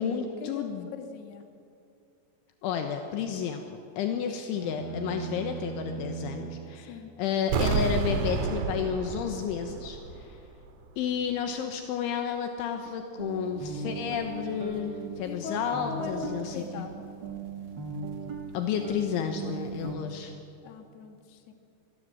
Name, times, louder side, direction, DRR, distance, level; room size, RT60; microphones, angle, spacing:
voice 1, 0.0-0.9 2.6-10.4 11.0-16.9 18.5-20.3, left 7 dB, 80° left, 5 dB, 3.5 m, -31 dB
voice 2, 1.0-1.5 6.9-7.1 15.2-17.1 20.6-21.5, left 6 dB, 60° left, 5 dB, 3.6 m, -40 dB
sound 1, 4.5-6.8, right 8 dB, 10° right, 7.1 m, -38 dB
sound 2, 7.5-10.4 10.7-10.8, right 5 dB, 75° right, 3.7 m, -30 dB
sound 3, 13.2-20.0, right 5 dB, 45° right, 1.4 m, -38 dB
25.5 x 20.5 x 7.8 m, 2.6 s
omnidirectional pair, 5.6 m